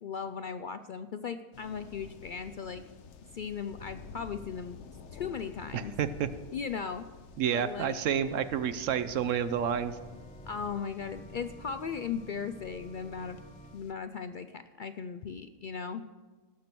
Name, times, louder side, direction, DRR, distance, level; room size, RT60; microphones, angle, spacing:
voice 1, 0.0-2.8 3.3-4.8 5.1-5.9 6.5-7.0 7.5-8.0 10.5-13.4 13.7-16.0, left 6 dB, 75° left, 10 dB, 0.4 m, -37 dB
sound 1, 1.5-13.9, left 5 dB, 60° left, 1.0 m, -51 dB
voice 2, 5.7-6.3 7.4-10.0, right 8 dB, 70° right, 13 dB, 0.9 m, -29 dB
Organ, 8.0-13.8, equal, 10° left, 0.4 m, -51 dB
18.0 x 6.8 x 6.0 m, 1.4 s
omnidirectional pair, 1.4 m